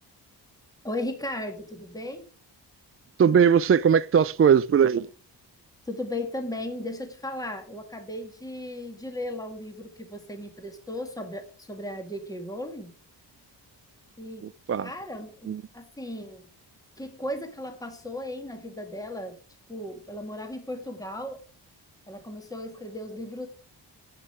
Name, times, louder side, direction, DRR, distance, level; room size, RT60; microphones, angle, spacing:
voice 1, 0.8-2.3 5.9-12.9 14.2-14.5 14.8-16.5 17.0-19.4 19.7-21.4 22.1-23.5, left 1 dB, 10° left, 2.0 m, -36 dB
voice 2, 3.2-5.1 14.7-14.9 15.5-15.6, right 7 dB, 35° right, 0.4 m, -19 dB
8.6 x 7.9 x 4.9 m
cardioid pair, 80°, 43 cm